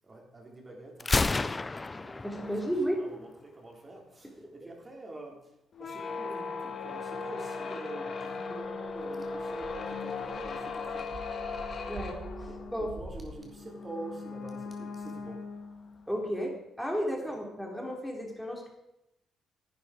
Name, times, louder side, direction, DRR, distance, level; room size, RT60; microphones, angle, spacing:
voice 1, 0.0-11.2 11.4-11.9 12.5-12.6 12.9-15.5 16.1-16.2, right 2 dB, 25° right, 0 dB, 3.4 m, -46 dB
Gunshot gunfire, 1.0-3.0, left 3 dB, 25° left, 0.3 m, -30 dB
voice 2, 2.2-3.0 4.4-4.5 11.9-12.9 16.1-18.7, equal, ahead, 0 dB, 3.1 m, -33 dB
sound 1, 5.7-16.1, left 4 dB, 50° left, 1.5 m, -38 dB
sound 2, 8.6-13.4, right 1 dB, 55° right, 2.6 m, -46 dB
11.0 x 9.4 x 5.0 m, 0.88 s
cardioid pair, 90°, 0 cm